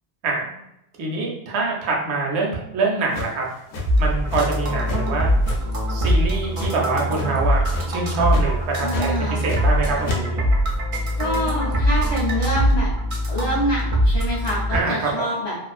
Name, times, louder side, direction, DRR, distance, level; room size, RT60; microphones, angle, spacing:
voice 1, 1.0-3.5 4.0-5.3 5.9-7.6 7.9-10.5 14.7-15.2, right 3 dB, 75° right, -2 dB, 0.9 m, -25 dB
sound 1, 3.1-4.6 4.9-5.0 5.4-6.7 7.1-7.4 7.7-8.0 8.3-8.4 8.9-9.8 10.0-10.2, left 3 dB, 65° left, 0.7 m, -30 dB
sound 2, 3.8-14.8, equal, 55° right, 0.4 m, -22 dB
voice 2, 8.8-9.5 11.2-12.9 13.3-15.6, equal, 40° left, -6 dB, 0.4 m, -26 dB
2.4 x 2.3 x 2.4 m, 0.84 s
omnidirectional pair, 1.2 m